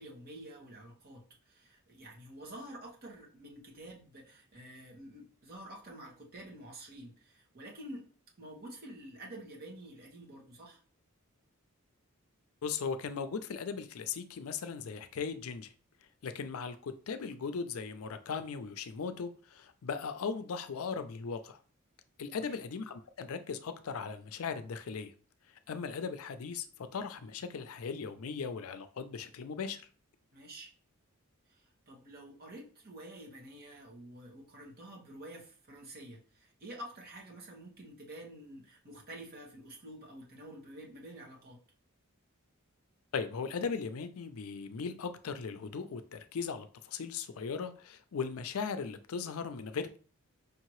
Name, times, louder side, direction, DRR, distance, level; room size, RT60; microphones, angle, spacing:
voice 1, 0.0-8.1 8.4-10.8 22.3-22.6 30.3-30.7 31.5-41.6, right 1 dB, 45° right, -1 dB, 1.3 m, -49 dB
voice 2, 12.6-15.7 16.2-21.6 22.2-25.1 25.7-26.7 26.9-29.8 43.1-50.0, left 5 dB, 70° left, 10 dB, 0.4 m, -38 dB
5.1 x 2.8 x 3.0 m, 0.39 s
head